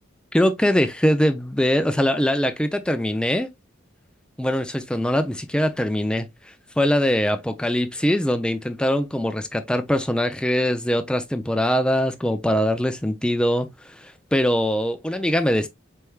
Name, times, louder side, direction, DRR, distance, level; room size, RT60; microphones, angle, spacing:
voice 1, 0.3-3.5 4.4-15.7, equal, 5° left, 0.4 m, -22 dB
4.4 x 3.4 x 2.3 m
head